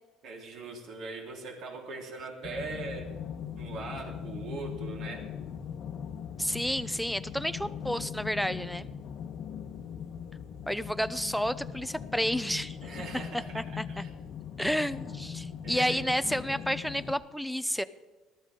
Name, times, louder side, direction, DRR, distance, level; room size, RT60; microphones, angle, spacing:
voice 1, 0.2-3.1 3.6-5.3 12.8-14.1 15.6-16.0, right 3 dB, 55° right, -1 dB, 4.1 m, -41 dB
sound 1, 2.4-17.1, left 8 dB, 50° left, 1.0 m, -40 dB
voice 2, 6.4-8.9 10.7-12.8 13.5-14.0 14.6-17.8, equal, ahead, 13 dB, 0.5 m, -31 dB
19.5 x 13.5 x 3.8 m, 1.3 s
cardioid pair, 150°, 0 cm